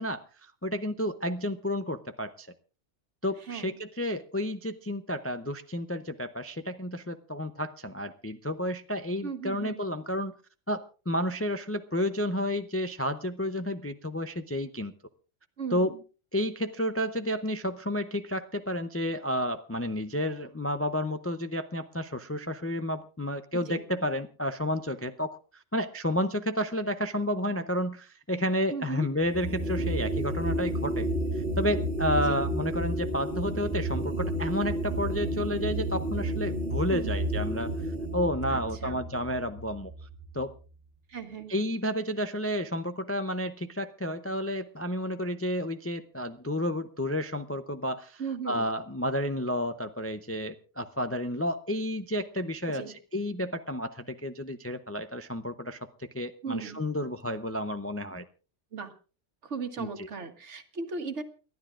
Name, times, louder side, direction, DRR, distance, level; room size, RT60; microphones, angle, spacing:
voice 1, 0.0-2.5 3.2-10.3 10.7-14.9 15.7-15.9 16.3-31.1 31.3-37.7 38.1-39.9 40.3-40.5 41.5-58.3 59.8-60.1, left 1 dB, 20° left, 9 dB, 0.3 m, -31 dB
voice 2, 3.5-3.8 9.2-9.8 15.6-16.0 23.7-23.8 28.7-29.1 32.3-32.4 36.9-37.1 38.5-39.0 41.1-41.5 48.2-48.6 52.7-52.9 56.4-56.8 58.7-58.9 59.4-61.2, right 5 dB, 75° right, 8 dB, 1.6 m, -37 dB
sound 1, 29.2-40.6, right 1 dB, 55° right, 1.8 m, -31 dB
29.5 x 12.0 x 2.5 m, 0.36 s
omnidirectional pair, 1.2 m